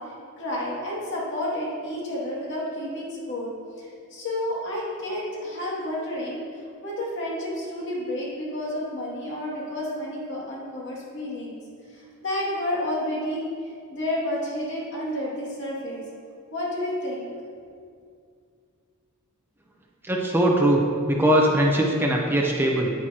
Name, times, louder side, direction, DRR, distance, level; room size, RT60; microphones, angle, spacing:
voice 1, 0.0-11.6 11.9-16.0 16.5-17.3, left 1 dB, 60° left, -5 dB, 2.3 m, -31 dB
voice 2, 20.0-22.9, right 1 dB, 10° right, -1 dB, 0.7 m, -21 dB
9.3 x 9.3 x 2.9 m, 2.3 s
head